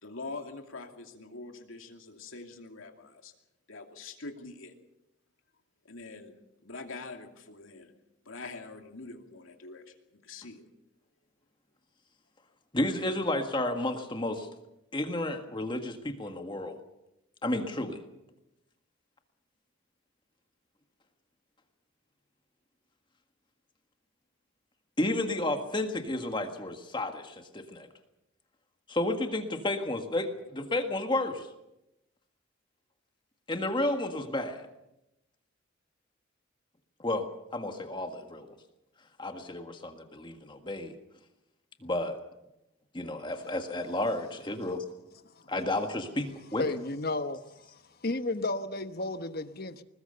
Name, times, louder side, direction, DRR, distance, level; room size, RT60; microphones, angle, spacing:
voice 1, 0.0-3.3 3.7-4.7 5.8-6.3 6.6-7.9 8.2-10.6, left 3 dB, 75° left, 2.6 m, -44 dB
voice 2, 12.7-14.5 14.9-16.8 17.4-18.0 25.0-27.9 28.9-31.5 33.5-34.7 37.0-38.5 39.2-40.9 41.8-42.2 42.9-44.8 45.5-46.6, left 1 dB, 25° left, 1.7 m, -32 dB
voice 3, 46.6-49.8, left 2 dB, 45° left, 1.1 m, -33 dB
21.0 x 20.5 x 6.8 m
head